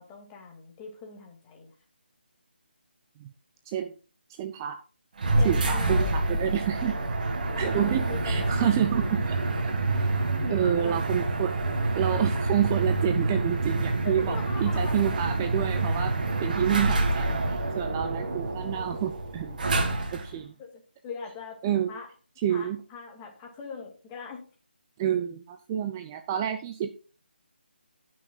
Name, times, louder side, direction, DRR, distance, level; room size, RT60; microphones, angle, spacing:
voice 1, 0.0-1.7 5.4-6.1 7.5-9.2 10.4-11.0 14.0-14.9 20.6-21.6 21.9-22.1 22.5-24.4, left 5 dB, 15° left, 1 dB, 2.3 m, -41 dB
voice 2, 4.4-4.8 5.4-7.0 7.6-9.4 9.6-9.7 10.0-10.1 10.5-11.5 11.9-16.1 16.4-19.6 20.1-20.5 21.6-21.9 22.4-22.8 25.0-26.9, right 10 dB, 20° right, 7 dB, 0.6 m, -28 dB
sound 1, 5.2-20.4, right 2 dB, 45° right, 2.0 m, -27 dB
18.5 x 6.3 x 2.4 m, 0.36 s
figure-of-eight pair, 155°, 6 cm